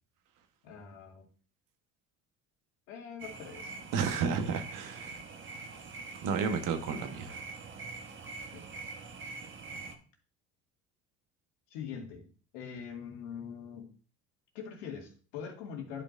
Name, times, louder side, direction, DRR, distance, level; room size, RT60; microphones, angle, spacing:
voice 1, 0.6-1.2 2.9-3.8 8.5-8.6 11.7-12.3 12.5-13.9 14.5-16.0, left 7 dB, 80° left, 1 dB, 2.1 m, -43 dB
sound 1, 3.2-9.9, right 4 dB, 35° right, 1.3 m, -44 dB
voice 2, 3.9-5.2 6.2-7.4, right 6 dB, 60° right, 7 dB, 1.3 m, -32 dB
10.5 x 5.2 x 2.6 m, 0.39 s
hypercardioid pair, 70°, 36 cm